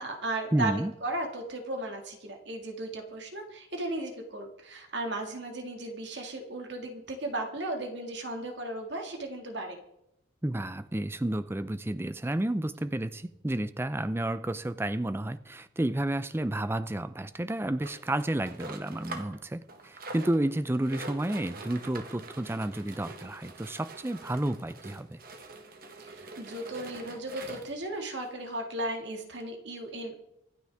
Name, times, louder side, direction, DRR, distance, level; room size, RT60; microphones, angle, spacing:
voice 1, 0.0-9.8 26.0-30.2, right 2 dB, 65° right, 2 dB, 2.1 m, -36 dB
voice 2, 0.5-0.9 10.4-25.2, right 1 dB, 10° right, 13 dB, 0.4 m, -31 dB
sound 1, 17.8-19.4 19.7-27.9 28.5-28.6 28.8-28.9 29.4-29.5, right 3 dB, 45° right, 1.3 m, -45 dB
25.0 x 9.4 x 3.5 m, 0.84 s
head